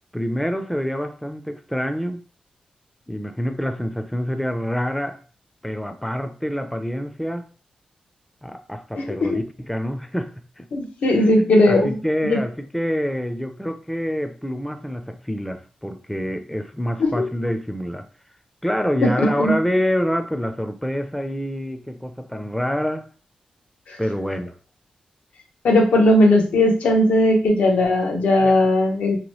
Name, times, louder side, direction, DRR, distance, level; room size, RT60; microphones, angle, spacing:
voice 1, 0.1-2.2 3.1-5.2 5.6-7.5 8.4-10.7 11.1-18.1 18.6-23.1 24.0-24.5 28.4-28.5, equal, 5° left, 7 dB, 0.4 m, -26 dB
voice 2, 9.0-9.4 10.7-12.0 12.2-12.4 17.0-17.3 19.0-19.6 23.9-24.0 25.6-29.2, left 1 dB, 80° left, 2 dB, 0.8 m, -18 dB
2.9 x 2.2 x 3.0 m, 0.38 s
cardioid pair, 60°, 2 cm